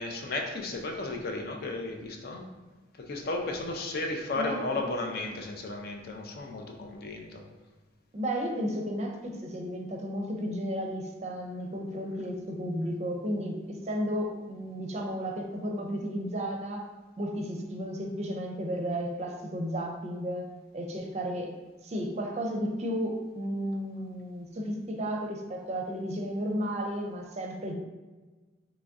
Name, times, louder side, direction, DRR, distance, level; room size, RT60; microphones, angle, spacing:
voice 1, 0.0-2.4 3.0-7.4, left 2 dB, 55° left, 2 dB, 0.5 m, -34 dB
voice 2, 8.1-16.9 17.2-20.5 20.7-21.5 21.8-27.7, equal, 35° right, 2 dB, 0.5 m, -33 dB
3.0 x 2.5 x 3.5 m, 1.3 s
head